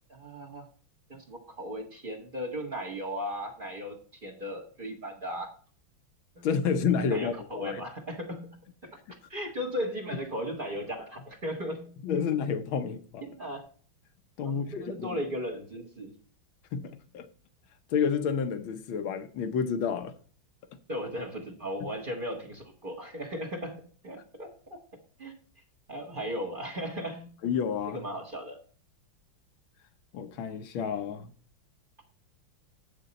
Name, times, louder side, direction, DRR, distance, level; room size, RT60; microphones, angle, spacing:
voice 1, 0.1-0.7 1.1-5.5 6.3-6.4 7.0-8.6 9.3-12.2 13.2-13.6 14.4-16.1 20.9-24.8 25.2-25.3 25.9-27.3 27.9-28.6, equal, 25° right, 1.6 m, -36 dB
voice 2, 6.4-7.8 12.0-13.2 14.4-15.2 16.7-17.3 17.9-20.1 27.4-28.0 30.1-31.3, left 6 dB, 75° left, 1.6 m, -30 dB
8.5 x 6.6 x 4.0 m
omnidirectional pair, 2.2 m